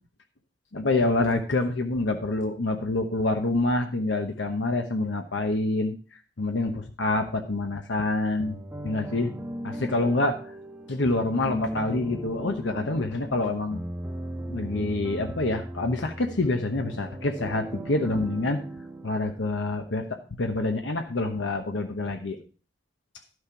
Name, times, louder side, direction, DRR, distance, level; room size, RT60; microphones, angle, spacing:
voice 1, 0.7-5.9 6.4-8.6 8.8-9.3 9.6-10.5 10.9-13.8 14.5-18.6 19.0-22.4, left 2 dB, 85° left, 4 dB, 1.0 m, -27 dB
sound 1, 8.4-20.1, equal, 10° right, 1.0 m, -38 dB
12.0 x 6.4 x 4.6 m, 0.38 s
head